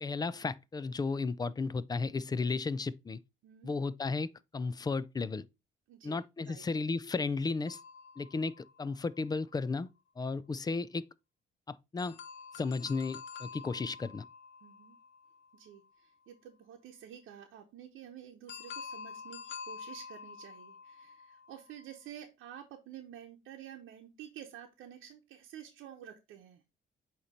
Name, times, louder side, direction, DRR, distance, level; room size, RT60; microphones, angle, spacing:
voice 1, 0.0-3.2 3.6-5.5 6.0-7.8 8.2-9.9 10.2-11.0 11.7-12.2 12.6-14.2, left 4 dB, 20° left, 0.4 m, -34 dB
voice 2, 5.9-6.6 14.6-15.0 15.5-26.6, right 10 dB, 85° right, 0.9 m, -50 dB
sound 1, 7.7-9.4 12.0-15.9 18.5-22.0, left 6 dB, 65° left, 0.8 m, -48 dB
8.2 x 3.0 x 4.1 m
cardioid pair, 90°, 20 cm